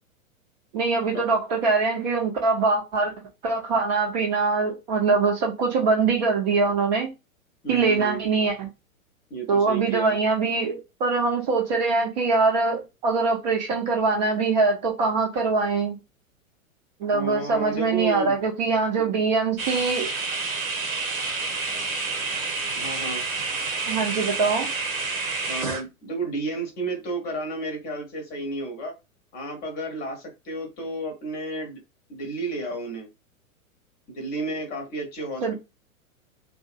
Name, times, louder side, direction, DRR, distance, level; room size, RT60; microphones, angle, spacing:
voice 1, 0.7-3.1 3.4-7.1 7.7-8.7 9.5-16.0 17.0-20.1 23.9-24.7 35.4-35.5, right 4 dB, 30° right, 0.6 m, -23 dB
voice 2, 7.6-8.2 9.3-10.2 17.0-18.3 18.9-19.1 22.7-23.2 25.5-28.9 29.3-31.8 32.1-33.1 34.1-35.5, right 2 dB, 20° left, 0.8 m, -32 dB
sound 1, 19.6-25.8, right 4 dB, 75° right, 0.9 m, -29 dB
2.6 x 2.5 x 2.4 m
figure-of-eight pair, 105°, 42 cm